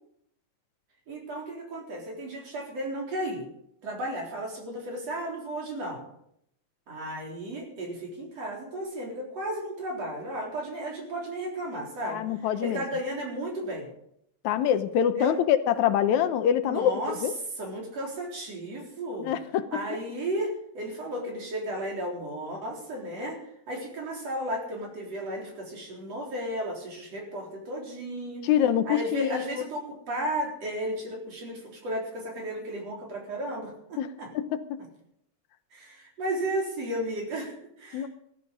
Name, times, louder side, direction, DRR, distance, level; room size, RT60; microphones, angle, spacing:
voice 1, 1.1-3.5 3.8-6.0 6.9-12.2 12.6-13.9 15.0-15.3 16.6-17.2 17.6-19.3 19.7-23.4 23.7-28.5 28.9-34.3 35.7-38.1, right 1 dB, 55° right, -1 dB, 4.9 m, -34 dB
voice 2, 12.1-12.8 14.4-17.3 19.2-19.8 28.4-29.4 34.0-34.8 37.9-38.1, left 9 dB, 75° left, 11 dB, 2.2 m, -25 dB
15.0 x 14.5 x 5.3 m, 0.74 s
omnidirectional pair, 3.4 m